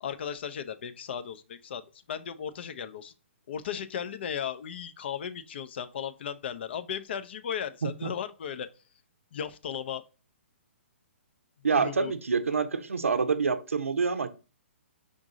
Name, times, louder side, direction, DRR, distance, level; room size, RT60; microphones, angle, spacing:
voice 1, 0.0-1.8 2.1-3.1 3.5-8.7 9.3-10.0 11.7-12.1, left 8 dB, 55° left, 0.5 m, -36 dB
voice 2, 11.6-14.3, right 5 dB, 80° right, 0.6 m, -27 dB
5.0 x 2.6 x 3.8 m
figure-of-eight pair, 130°, 7 cm